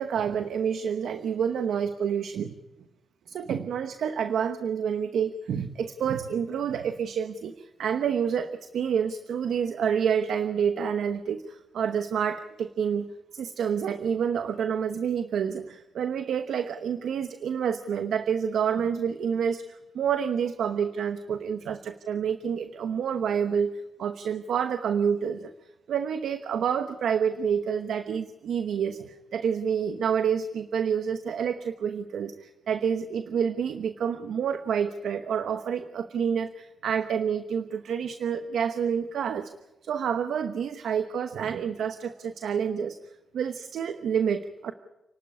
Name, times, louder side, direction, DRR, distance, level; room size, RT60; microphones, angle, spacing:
voice 1, 0.0-2.5 3.3-13.1 13.3-21.8 22.1-25.5 25.9-39.6 39.8-43.0 43.3-44.7, right 7 dB, 85° right, 9 dB, 1.0 m, -28 dB
29.5 x 12.0 x 9.9 m, 1.0 s
cardioid pair, 60°, 0 cm